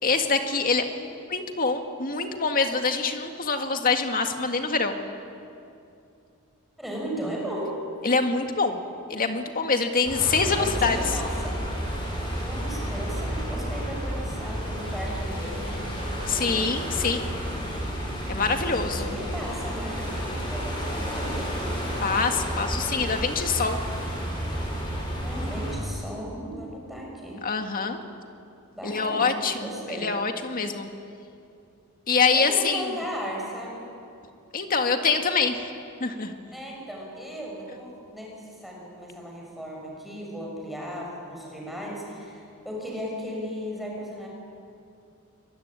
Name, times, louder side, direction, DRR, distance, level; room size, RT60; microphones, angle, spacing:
voice 1, 0.0-5.0 8.0-8.8 9.1-11.0 16.3-17.3 18.3-19.2 22.0-23.8 27.4-28.0 28.8-30.9 32.1-33.0 34.5-35.6 36.0-36.3, left 4 dB, 40° left, 5 dB, 2.0 m, -25 dB
voice 2, 6.8-7.8 10.6-11.6 12.3-15.8 18.5-21.5 25.2-27.4 28.7-30.1 32.3-33.8 36.5-44.3, equal, ahead, -2 dB, 6.4 m, -36 dB
sound 1, 10.1-25.8, equal, 20° left, 7.6 m, -31 dB
24.5 x 22.5 x 9.8 m, 2.6 s
head